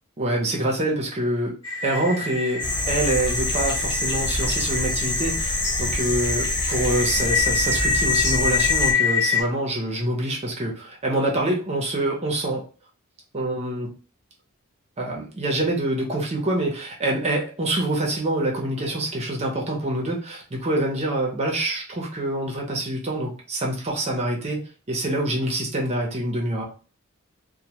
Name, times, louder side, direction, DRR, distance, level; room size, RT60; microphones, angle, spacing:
voice 1, 0.2-1.5 1.8-12.6 13.3-13.9 15.0-26.6, right 1 dB, 30° right, -1 dB, 0.6 m, -26 dB
sound 1, 1.6-9.4, left 5 dB, 75° left, 1.0 m, -26 dB
sound 2, 2.6-8.9, left 2 dB, 20° left, 0.4 m, -26 dB
2.1 x 2.1 x 2.8 m, 0.37 s
head